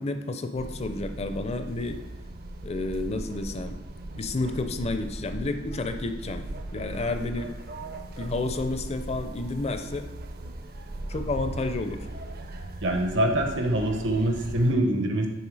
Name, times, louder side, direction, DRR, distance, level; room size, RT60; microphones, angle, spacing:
voice 1, 0.0-2.0 2.6-3.8 4.2-6.4 6.7-7.5 8.2-10.1 11.1-12.0, left 2 dB, 35° left, 8 dB, 0.5 m, -30 dB
sound 1, 0.5-14.7, right 1 dB, 55° right, 0.6 m, -38 dB
voice 2, 12.8-15.3, right 1 dB, 75° right, 3 dB, 1.0 m, -24 dB
7.1 x 4.3 x 4.8 m, 1.0 s
head